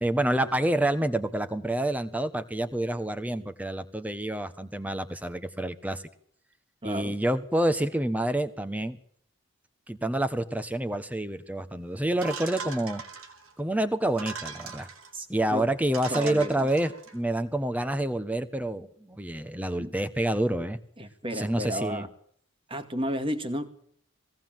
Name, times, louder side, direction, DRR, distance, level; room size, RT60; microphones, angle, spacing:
voice 1, 0.0-6.0 6.8-9.0 9.9-13.0 13.6-14.9 15.3-20.8 21.3-22.0, right 1 dB, 5° right, 9 dB, 1.3 m, -28 dB
voice 2, 6.8-7.2 15.1-15.7 16.1-16.7 19.8-19.9 21.0-22.1 22.7-23.7, equal, 25° right, 9 dB, 2.0 m, -32 dB
sound 1, 12.2-13.5 14.1-15.1 15.6-15.7 15.9-17.1, right 5 dB, 85° right, 4.3 m, -40 dB
21.0 x 17.5 x 7.6 m, 0.64 s
head